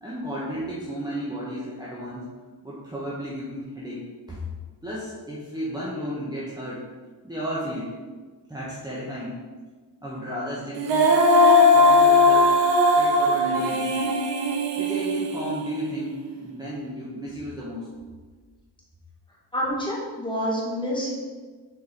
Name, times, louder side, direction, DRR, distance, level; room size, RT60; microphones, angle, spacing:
voice 1, 0.0-2.3 2.6-4.0 4.3-4.4 4.8-6.8 7.2-7.9 8.5-9.3 10.0-11.2 11.7-12.6 12.9-14.0 14.8-17.9, equal, 10° right, -8 dB, 1.2 m, -33 dB
Female singing, 10.8-16.0, left 2 dB, 85° right, 0.9 m, -19 dB
voice 2, 19.5-21.1, equal, 10° left, -6 dB, 1.8 m, -27 dB
6.5 x 4.6 x 4.4 m, 1.4 s
wide cardioid pair, 130°, 41 cm